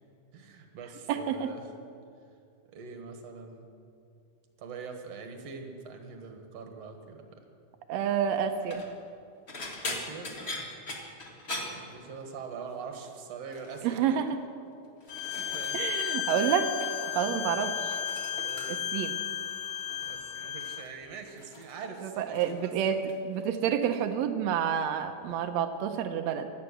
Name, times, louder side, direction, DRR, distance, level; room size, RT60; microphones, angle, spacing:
voice 1, 0.3-1.7 2.7-3.7 4.6-7.5 9.8-10.5 11.5-14.2 15.1-15.8 17.2-17.5 18.3-19.0 20.1-23.1, right 5 dB, 55° right, 4 dB, 2.3 m, -44 dB
voice 2, 1.1-1.5 7.9-8.8 13.8-14.3 15.7-16.7 17.1-18.0 18.7-19.2 22.0-26.5, right 8 dB, 85° right, 7 dB, 1.5 m, -29 dB
sound 1, 8.5-8.9 9.5-12.5 12.8-13.1 13.5-14.0 14.7-16.1 16.4-17.2 17.5-19.0 19.9-20.2 20.6-22.6 22.9-23.4 23.8-24.0 25.3-25.4, left 2 dB, 40° left, 0.9 m, -42 dB
Bowed string instrument, 15.1-20.9, left 11 dB, 75° left, 1.9 m, -34 dB
16.5 x 12.0 x 6.7 m, 2.4 s
omnidirectional pair, 4.0 m